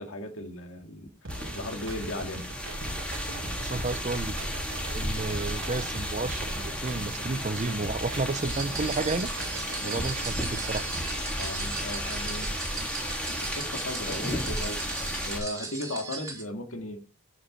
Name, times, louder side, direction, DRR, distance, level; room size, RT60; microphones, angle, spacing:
voice 1, 0.0-2.5 11.4-17.0, left 1 dB, 75° left, 2.2 m, -37 dB
sound 1, 1.2-11.3, right 1 dB, 65° right, 1.9 m, -41 dB
sound 2, 1.3-15.4, equal, 5° left, 3.6 m, -33 dB
voice 2, 3.6-4.3 4.9-9.3 9.8-10.9, right 3 dB, 35° right, 0.7 m, -32 dB
sound 3, 8.4-16.4, right 4 dB, 15° right, 3.6 m, -38 dB
15.0 x 6.5 x 3.8 m
head